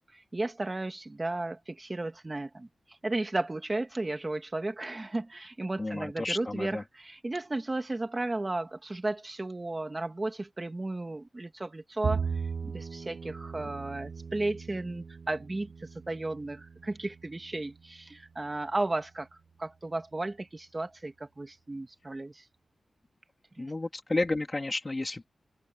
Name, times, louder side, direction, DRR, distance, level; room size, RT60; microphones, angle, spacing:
voice 1, 0.1-2.7 3.0-12.3 12.6-19.3 19.6-22.4 23.6-23.7, right 2 dB, 20° right, 2.0 m, -34 dB
voice 2, 5.8-6.8 13.6-13.7 23.6-25.3, left 2 dB, 20° left, 3.2 m, -32 dB
Bowed string instrument, 12.0-18.4, right 6 dB, 50° right, 0.9 m, -38 dB
wide cardioid pair, 165°, 0 cm